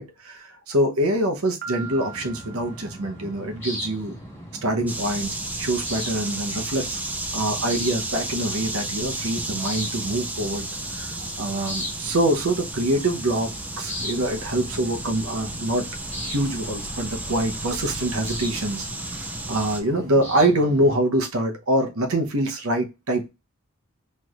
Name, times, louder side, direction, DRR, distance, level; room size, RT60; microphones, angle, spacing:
voice 1, 0.0-4.1 4.6-7.0 7.3-15.9 16.2-23.3, right 1 dB, 80° right, 0.9 m, -25 dB
Piano, 1.6-3.5, right 6 dB, 45° right, 0.7 m, -40 dB
sound 1, 1.7-21.0, equal, 10° left, 1.7 m, -38 dB
sound 2, 4.9-19.8, right 2 dB, 5° right, 0.4 m, -33 dB
4.5 x 3.1 x 2.4 m
head